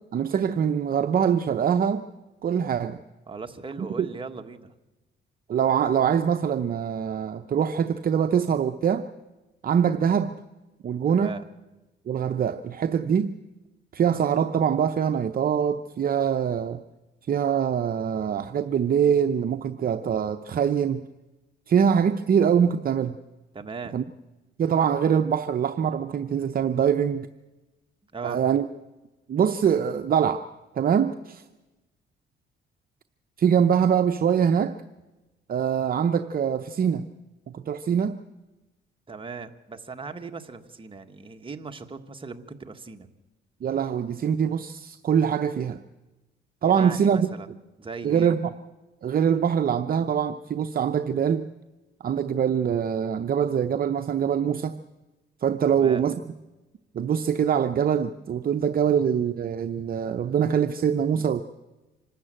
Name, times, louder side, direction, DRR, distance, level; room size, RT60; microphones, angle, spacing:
voice 1, 0.1-2.1 2.4-3.0 4.0-4.1 5.5-9.1 9.6-10.3 10.8-11.4 12.1-13.3 13.9-16.8 17.3-21.0 21.7-23.2 23.9-24.0 24.6-27.3 28.2-28.7 29.3-30.5 30.7-31.4 33.4-34.8 35.5-37.1 37.5-38.2 43.6-45.8 46.6-47.3 48.0-48.5 49.0-51.5 52.0-54.8 55.4-56.2 56.9-61.4, right 8 dB, 45° right, 0.7 m, -23 dB
voice 2, 3.3-4.7 11.1-11.4 23.5-24.0 28.1-28.4 39.1-43.1 46.7-47.5 47.8-48.3 55.7-56.0, right 4 dB, 25° right, 1.5 m, -38 dB
25.5 x 13.0 x 8.9 m
cardioid pair, 90°, 20 cm